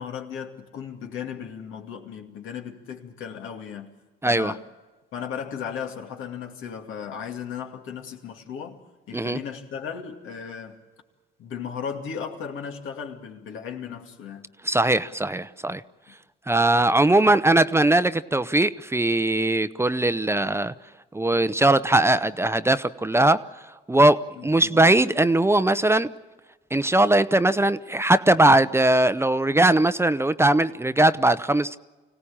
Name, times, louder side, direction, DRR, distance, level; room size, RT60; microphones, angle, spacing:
voice 1, 0.0-3.9 4.2-4.6 5.1-8.8 9.1-10.8 11.4-14.5 24.4-25.0, left 7 dB, 85° left, 2.5 m, -36 dB
voice 2, 4.2-4.5 9.1-9.4 14.6-15.8 16.5-20.7 21.1-23.4 23.9-26.1 26.7-31.8, right 2 dB, 15° right, 0.7 m, -20 dB
25.0 x 17.5 x 8.7 m
cardioid pair, 90°, 20 cm